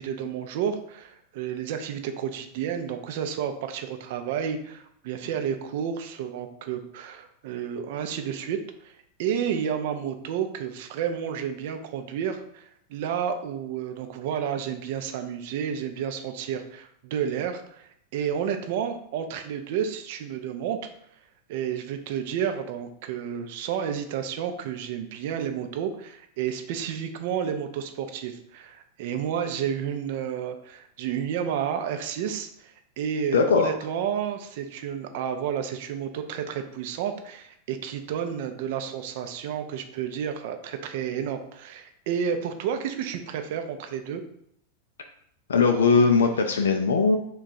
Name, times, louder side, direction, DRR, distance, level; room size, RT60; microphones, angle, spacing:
voice 1, 0.0-20.8 21.5-44.2, right 8 dB, 50° right, 7 dB, 0.4 m, -31 dB
voice 2, 33.3-33.7 45.5-47.2, left 4 dB, 65° left, 4 dB, 0.3 m, -20 dB
3.5 x 2.3 x 3.9 m, 0.71 s
figure-of-eight pair, 90°, 0 cm